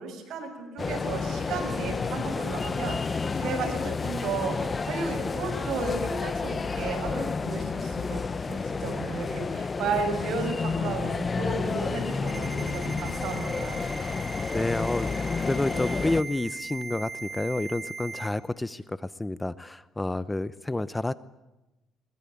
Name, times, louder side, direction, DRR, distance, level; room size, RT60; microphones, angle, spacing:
voice 1, 0.0-11.1 11.4-13.8, right 4 dB, 70° right, 4 dB, 7.0 m, -34 dB
sound 1, 0.8-16.2, left 4 dB, 30° left, 1.0 m, -30 dB
Ringtone, 12.3-18.3, right 4 dB, 15° right, 2.9 m, -39 dB
voice 2, 14.5-21.1, left 2 dB, 10° left, 17 dB, 0.7 m, -29 dB
23.0 x 20.5 x 8.6 m, 1.0 s
cardioid pair, 115°, 0 cm